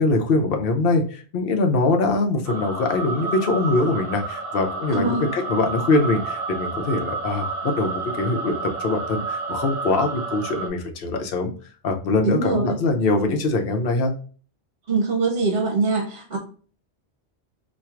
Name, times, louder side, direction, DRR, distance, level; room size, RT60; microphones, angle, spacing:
voice 1, 0.0-8.5 8.8-11.5 11.8-14.1, left 2 dB, 60° left, 3 dB, 0.8 m, -23 dB
sound 1, 2.5-10.7, right 3 dB, 40° right, 0.8 m, -30 dB
voice 2, 4.9-5.2 12.2-12.8 14.9-16.4, right 3 dB, 60° right, -1 dB, 1.0 m, -23 dB
4.3 x 2.4 x 2.4 m, 0.41 s
omnidirectional pair, 1.1 m